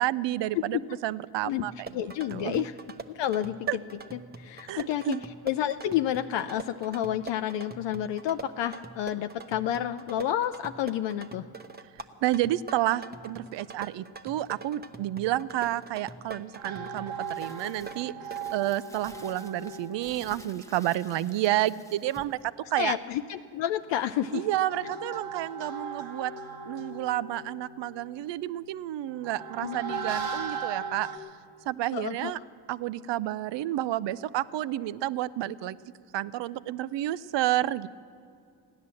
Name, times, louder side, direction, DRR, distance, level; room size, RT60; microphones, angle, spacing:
voice 1, 0.0-2.6 3.7-3.8 4.7-5.2 12.2-18.1 18.5-22.9 24.3-26.3 26.7-31.1 31.7-32.4 32.7-35.8 36.1-37.9, right 14 dB, 65° right, 17 dB, 0.6 m, -30 dB
sound 1, 1.6-18.6, right 3 dB, 20° right, 0.9 m, -44 dB
voice 2, 1.9-2.7 3.1-3.8 4.1-5.2 5.4-11.4 22.8-24.5 29.6-29.8 31.9-32.4, left 11 dB, 65° left, 8 dB, 0.5 m, -30 dB
sound 2, 16.6-21.6 23.8-31.2, right 5 dB, 85° right, 1.5 m, -39 dB
Crumpling crinkling, 17.2-22.4, left 1 dB, 5° left, 0.8 m, -53 dB
15.5 x 10.0 x 7.6 m, 2.4 s
supercardioid pair, 50°, 46 cm